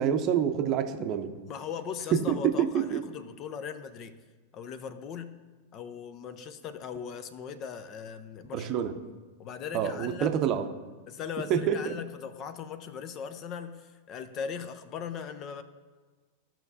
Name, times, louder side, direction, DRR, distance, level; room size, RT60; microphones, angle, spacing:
voice 1, 0.0-1.3 2.1-3.0 8.5-8.9 9.7-10.7 11.5-11.9, right 8 dB, 35° right, 7 dB, 0.7 m, -27 dB
voice 2, 1.5-4.2 4.5-5.4 5.7-8.9 9.4-10.3 11.1-15.6, left 7 dB, 35° left, 12 dB, 0.6 m, -39 dB
16.0 x 5.8 x 2.7 m, 1.4 s
figure-of-eight pair, 90°, 0 cm